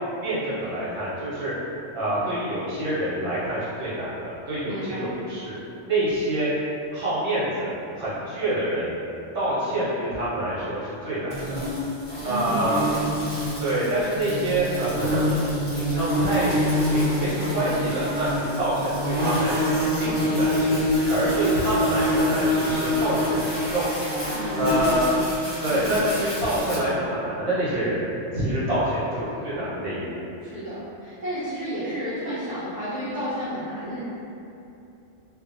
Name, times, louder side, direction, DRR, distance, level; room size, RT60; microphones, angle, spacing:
voice 1, 0.2-1.5 1.9-5.6 5.9-6.5 6.9-7.7 8.0-8.9 9.3-11.6 12.2-12.8 13.6-15.4 15.7-19.7 20.0-20.8 21.1-23.9 24.6-25.1 25.6-28.0 28.3-30.2, right 1 dB, 60° right, -11 dB, 1.1 m, -26 dB
voice 2, 4.6-5.1 12.2-13.1 24.3-25.3 25.6-26.0 30.4-34.0, equal, 45° right, -14 dB, 0.6 m, -32 dB
sound 1, 11.3-26.8, equal, 35° left, 0.5 m, -26 dB
2.5 x 2.2 x 2.5 m, 2.7 s
omnidirectional pair, 1.3 m